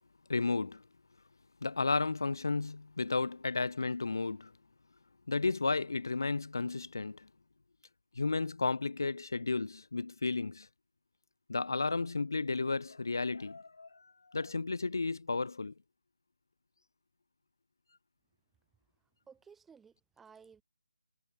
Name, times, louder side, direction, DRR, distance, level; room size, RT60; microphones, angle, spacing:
voice 1, 0.3-0.8 1.6-4.5 5.3-7.3 8.2-10.7 11.5-15.7, left 3 dB, 55° left, 0.7 m, -33 dB
voice 2, 19.3-20.6, right 6 dB, 5° right, 1.6 m, -57 dB
figure-of-eight pair, 155°, 2 cm